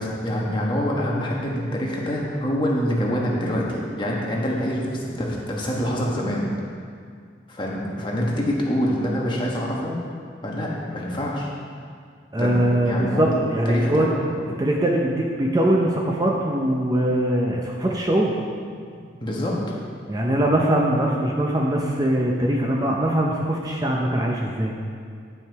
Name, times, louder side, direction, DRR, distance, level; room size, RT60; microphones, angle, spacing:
voice 1, 0.0-6.4 7.5-9.9 10.4-11.5 12.4-13.4 13.6-14.1 19.2-19.6, equal, 25° left, -3 dB, 1.2 m, -25 dB
voice 2, 12.3-14.1 14.6-18.3 20.1-24.7, right 1 dB, 20° right, -1 dB, 0.6 m, -22 dB
9.3 x 5.9 x 4.6 m, 2.2 s
head